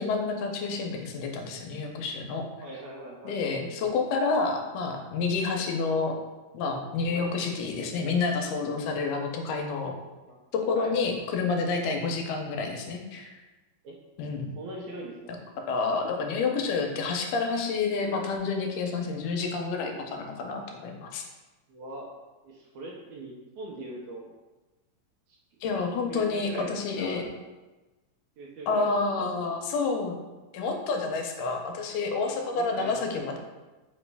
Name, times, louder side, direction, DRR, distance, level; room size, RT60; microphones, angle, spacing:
voice 1, 0.0-2.4 3.3-6.1 6.5-9.9 10.5-13.3 14.2-14.5 15.7-21.2 25.6-27.2 28.7-30.2 30.5-33.4, left 4 dB, 85° left, 3 dB, 2.1 m, -29 dB
voice 2, 2.6-3.4 5.5-5.7 7.1-7.4 10.3-10.4 10.7-11.0 13.8-13.9 14.6-15.3 21.7-22.1 22.4-24.3 25.3-25.4 26.1-27.5 28.4-29.4 32.5-33.3, right 1 dB, 80° right, -2 dB, 1.7 m, -41 dB
4.9 x 3.0 x 3.3 m, 1.1 s
omnidirectional pair, 3.7 m